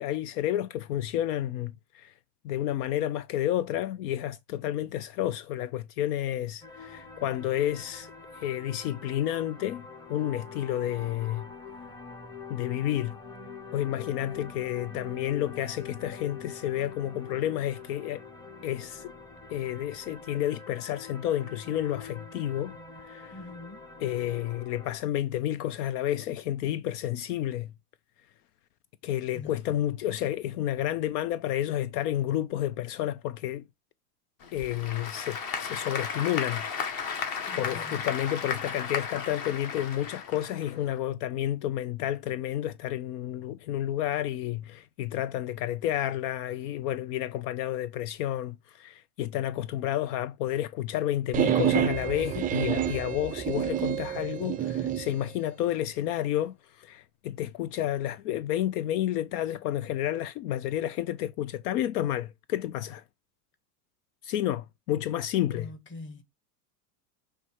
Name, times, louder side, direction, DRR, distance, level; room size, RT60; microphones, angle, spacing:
voice 1, 0.0-2.1 2.4-11.5 12.5-13.2 13.7-18.2 18.6-19.1 19.5-22.8 23.0-23.4 24.0-27.7 29.0-33.7 34.5-37.1 37.5-63.0 64.2-65.7, left 12 dB, 70° left, 0.6 m, -30 dB
sound 1, 6.6-25.0, left 5 dB, 10° left, 0.8 m, -44 dB
voice 2, 23.3-23.8 29.3-29.5 37.5-38.0 65.5-66.2, left 2 dB, 25° left, 1.5 m, -44 dB
Applause / Crowd, 34.4-41.0, left 6 dB, 45° left, 1.7 m, -35 dB
sound 2, 51.3-55.1, right 10 dB, 20° right, 0.4 m, -28 dB
6.9 x 3.3 x 4.7 m
supercardioid pair, 125°, 47 cm